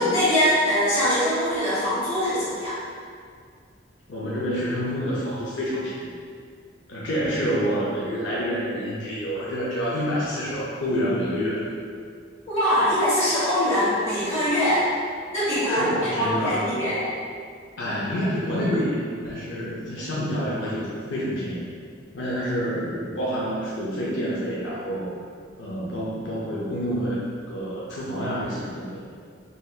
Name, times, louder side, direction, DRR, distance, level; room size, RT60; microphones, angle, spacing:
voice 1, 0.0-2.8 12.5-14.9 15.3-17.0, equal, 35° left, -12 dB, 1.3 m, -22 dB
voice 2, 4.1-6.1 6.9-11.6 15.7-16.7 17.8-19.0 19.3-21.6 22.1-25.1 25.6-29.0, equal, 80° left, -7 dB, 0.5 m, -28 dB
3.2 x 2.7 x 2.3 m, 2.1 s
head